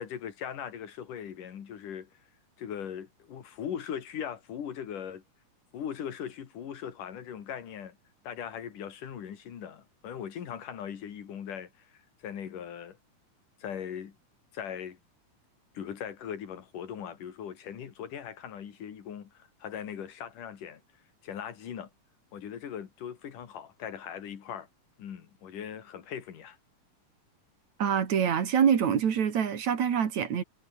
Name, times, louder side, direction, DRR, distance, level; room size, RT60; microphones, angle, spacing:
voice 1, 0.0-2.1 2.6-5.2 5.7-8.0 8.2-11.9 12.2-13.0 13.6-14.2 14.5-15.0 15.7-20.8 21.2-21.9 22.3-24.7 25.0-26.6, left 8 dB, 85° left, 4.0 m, -39 dB
voice 2, 27.8-30.4, right 8 dB, 65° right, 3.5 m, -25 dB
omnidirectional pair, 3.6 m